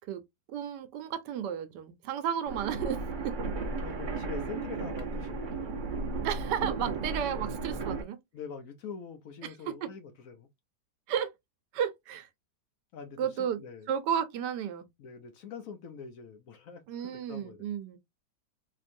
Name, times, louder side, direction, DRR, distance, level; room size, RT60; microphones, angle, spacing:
voice 1, 0.5-3.4 6.2-8.2 9.4-9.9 11.1-11.3 11.7-12.3 13.2-13.6 13.9-14.9 16.9-18.0, right 9 dB, 80° right, 1.3 m, -33 dB
sound 1, 2.5-8.0, right 3 dB, 50° right, 0.6 m, -34 dB
voice 2, 3.8-5.8 8.3-10.5 12.9-13.9 15.0-17.7, left 6 dB, 60° left, 1.0 m, -44 dB
3.7 x 2.9 x 2.5 m
omnidirectional pair, 1.8 m